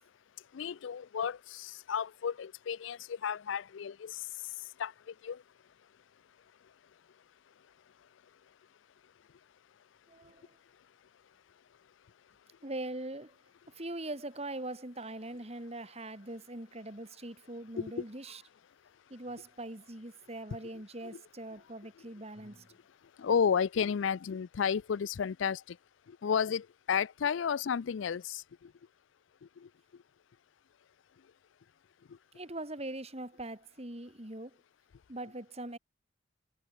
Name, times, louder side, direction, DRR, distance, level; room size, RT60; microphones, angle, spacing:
voice 1, 0.5-4.2 4.8-4.9 5.2-5.4 17.8-18.0 21.0-21.1 23.2-25.8 26.2-28.4 29.6-29.7, left 7 dB, 70° left, 0.4 m, -32 dB
voice 2, 10.1-10.5 12.6-13.4 13.7-18.4 19.1-22.7 32.3-34.6 35.1-35.8, right 1 dB, 30° right, 3.2 m, -42 dB
head